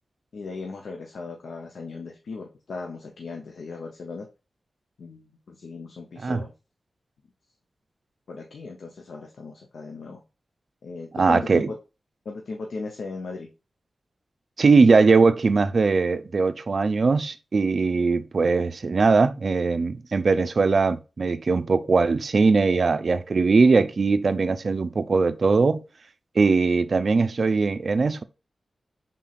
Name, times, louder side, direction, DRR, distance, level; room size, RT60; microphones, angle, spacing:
voice 1, 0.3-4.3 5.0-6.5 8.3-10.2 10.8-11.8 12.2-13.5, left 4 dB, 90° left, 0.6 m, -37 dB
voice 2, 11.2-11.7 14.6-25.8 26.4-28.2, right 4 dB, 55° right, 0.4 m, -20 dB
5.6 x 3.8 x 2.4 m
wide cardioid pair, 100°, 0 cm